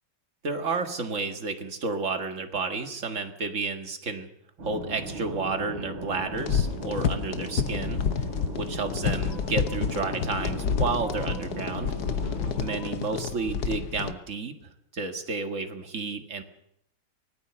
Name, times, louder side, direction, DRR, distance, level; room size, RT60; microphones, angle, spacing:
voice 1, 0.4-4.3 4.6-8.0 8.6-11.9 12.6-16.4, right 4 dB, 40° right, 6 dB, 2.0 m, -31 dB
sound 1, 4.6-12.8, right 2 dB, 80° right, 4.2 m, -38 dB
sound 2, 6.3-14.1, left 7 dB, 55° left, 1.4 m, -29 dB
sound 3, 9.3-14.2, left 3 dB, 75° left, 3.0 m, -48 dB
24.5 x 18.0 x 6.9 m, 0.76 s
omnidirectional pair, 2.2 m